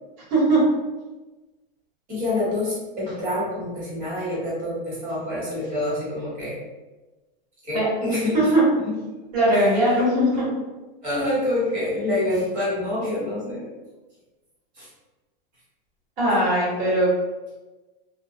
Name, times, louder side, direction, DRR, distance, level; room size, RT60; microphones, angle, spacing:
voice 1, 0.3-0.6 7.7-7.9 8.3-8.6 9.3-10.4 16.2-17.1, right 1 dB, 50° right, -7 dB, 1.1 m, -19 dB
voice 2, 2.1-6.6 7.6-8.5 8.8-9.0 9.5-9.7 10.3-10.4 11.0-13.7 14.7-14.9, left 1 dB, 30° right, -8 dB, 1.1 m, -27 dB
2.2 x 2.1 x 2.7 m, 1.2 s
supercardioid pair, 145°, 29 cm